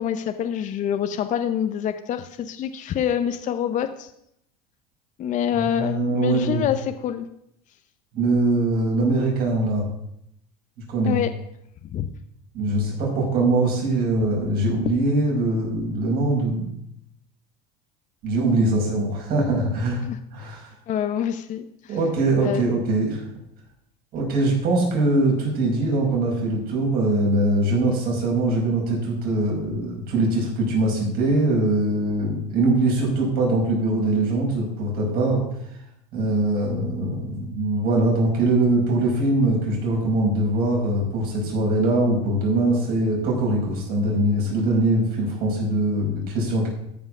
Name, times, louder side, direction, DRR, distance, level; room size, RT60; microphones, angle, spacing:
voice 1, 0.0-4.1 5.2-7.3 11.0-11.3 11.8-12.1 20.0-20.2 20.9-22.0 22.4-22.6, left 9 dB, 40° left, 9 dB, 0.8 m, -26 dB
voice 2, 5.6-6.6 8.1-9.8 10.9-11.2 12.5-16.7 18.2-20.0 20.3-20.7 21.9-23.2 24.1-35.4 36.1-46.7, right 2 dB, 50° right, -2 dB, 5.2 m, -22 dB
13.5 x 5.5 x 6.1 m, 0.76 s
supercardioid pair, 105°, 20 cm